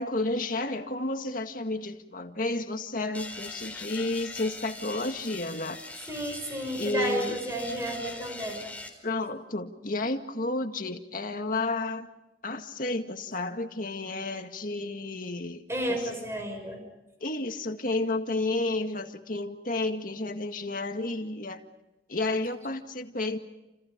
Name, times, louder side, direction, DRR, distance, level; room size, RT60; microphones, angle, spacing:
voice 1, 0.0-6.1 6.7-7.4 9.0-12.1 12.4-16.1 17.2-21.6 22.1-23.4, left 2 dB, 50° left, 6 dB, 2.0 m, -31 dB
sound 1, 3.1-8.9, left 2 dB, 10° left, 4.2 m, -42 dB
voice 2, 6.1-8.7 15.7-16.8, right 1 dB, 15° right, 3 dB, 5.9 m, -32 dB
30.0 x 28.0 x 5.2 m, 0.98 s
head